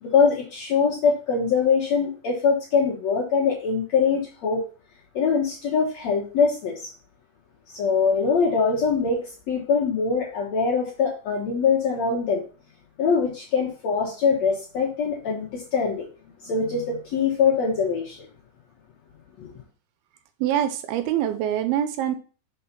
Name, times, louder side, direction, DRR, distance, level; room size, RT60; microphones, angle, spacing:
voice 1, 0.0-4.6 5.2-6.9 7.7-12.4 13.0-16.1 16.4-18.3 19.4-19.5, left 5 dB, 65° left, -2 dB, 1.8 m, -23 dB
voice 2, 20.4-22.2, right 11 dB, 80° right, 10 dB, 2.5 m, -24 dB
5.6 x 4.7 x 5.9 m, 0.37 s
omnidirectional pair, 4.6 m